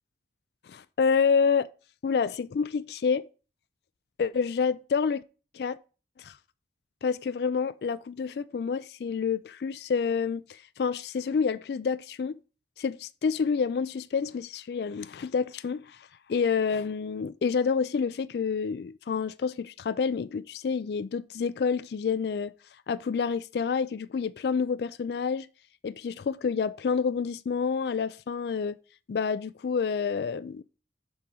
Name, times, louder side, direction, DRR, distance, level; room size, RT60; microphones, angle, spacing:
voice 1, 0.7-1.7 2.0-3.3 4.2-5.2 5.5-5.8 6.2-6.3 7.0-12.4 12.8-16.0 16.3-22.5 22.9-25.5 25.8-28.8 29.1-30.6, left 5 dB, 65° left, 0.3 m, -28 dB
6.9 x 3.8 x 6.1 m
head